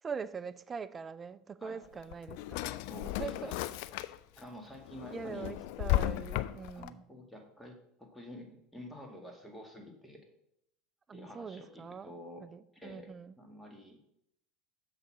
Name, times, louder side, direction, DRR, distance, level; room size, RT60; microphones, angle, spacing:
voice 1, 0.0-2.7 3.2-3.5 5.1-7.0 11.1-12.1 12.4-13.4, right 6 dB, 30° right, 0.4 m, -42 dB
voice 2, 1.6-2.0 2.9-3.6 4.4-5.5 6.3-10.3 11.1-12.5 12.7-14.0, left 1 dB, 5° left, 1.8 m, -49 dB
Drawer open or close, 1.8-4.4 4.8-6.9, left 16 dB, 65° left, 0.3 m, -34 dB
6.6 x 3.9 x 5.9 m
hypercardioid pair, 75°, 0 cm